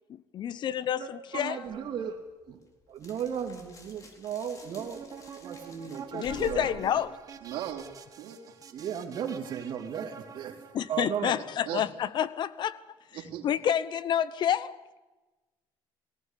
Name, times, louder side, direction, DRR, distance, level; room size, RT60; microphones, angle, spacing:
voice 1, 0.1-1.6 6.1-7.2 10.7-12.8 13.4-14.8, left 9 dB, 50° left, 0.9 m, -29 dB
voice 2, 1.0-2.2 2.5-2.6 2.9-6.9 8.7-10.5 10.9-11.4, right 8 dB, 55° right, 2.9 m, -36 dB
sound 1, 1.7-8.0, left 4 dB, 35° left, 4.1 m, -51 dB
sound 2, 4.6-11.0, right 7 dB, 40° right, 1.7 m, -46 dB
voice 3, 7.4-8.5 11.7-11.8 13.1-13.5, right 11 dB, 80° right, 3.4 m, -38 dB
19.0 x 18.0 x 8.3 m
cardioid pair, 120°, 9 cm